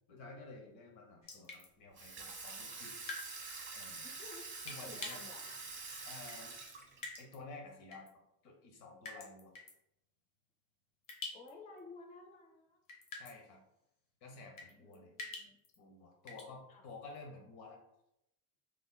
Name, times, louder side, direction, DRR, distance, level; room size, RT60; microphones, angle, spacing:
voice 1, 0.1-3.0 3.7-4.1 4.6-5.2 6.0-6.6 7.2-8.1 8.4-9.5 13.1-13.6 14.2-15.1 15.8-17.8, left 3 dB, 70° left, 1 dB, 1.1 m, -52 dB
sound 1, 1.2-1.7 3.0-3.3 3.5-3.6 4.7-5.2 6.2-6.5 7.0-7.4 7.9-8.1 9.0-9.7 11.0-11.5 11.8-11.9 12.9-13.4 14.6-15.8 16.3-16.5, left 3 dB, 45° left, 1.0 m, -45 dB
Water tap faucet / Sink (filling or washing), 2.0-7.2, right 3 dB, 25° right, 1.0 m, -46 dB
voice 2, 4.0-4.5 4.8-5.7 11.3-12.8 14.8-15.6 16.7-16.9, left 3 dB, 15° left, 3 dB, 0.4 m, -54 dB
3.5 x 3.1 x 2.2 m, 0.84 s
supercardioid pair, 85°, 48 cm